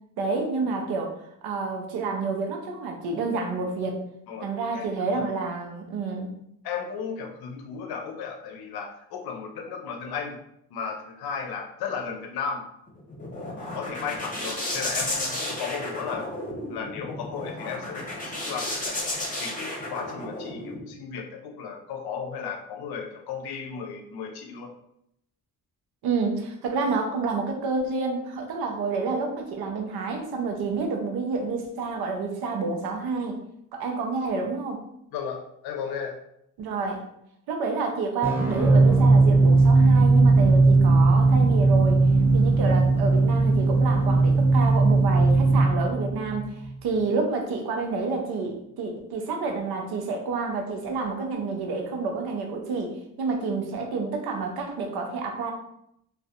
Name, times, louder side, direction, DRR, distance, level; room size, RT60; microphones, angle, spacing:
voice 1, 0.2-4.0 4.4-6.4 26.0-33.4 33.7-34.8 36.6-37.1 37.5-42.1 42.3-55.5, right 4 dB, 80° right, 3 dB, 0.6 m, -29 dB
voice 2, 4.7-5.2 6.6-10.4 10.7-12.7 13.5-16.3 16.7-19.1 19.4-24.7 35.1-36.2, left 6 dB, 80° left, 3 dB, 0.6 m, -35 dB
sound 1, 12.9-20.8, left 1 dB, 20° left, 1.0 m, -33 dB
sound 2, 38.2-46.9, right 3 dB, 5° right, 0.6 m, -18 dB
2.5 x 2.3 x 2.4 m, 0.75 s
supercardioid pair, 50°, 37 cm